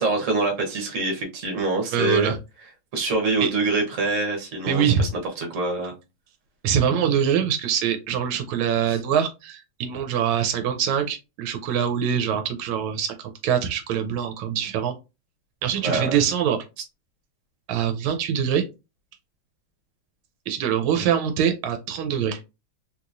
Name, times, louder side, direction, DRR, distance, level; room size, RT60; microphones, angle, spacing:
voice 1, 0.0-2.3 2.9-5.1 5.4-5.9 8.9-9.0 15.8-16.2, right 3 dB, 45° right, 2 dB, 1.1 m, -25 dB
voice 2, 1.9-2.4 3.4-3.5 4.7-5.1 6.6-14.9 15.6-16.6 17.7-18.6 20.5-22.4, right 8 dB, 85° right, 6 dB, 1.4 m, -24 dB
3.2 x 2.9 x 2.5 m, 0.27 s
omnidirectional pair, 2.2 m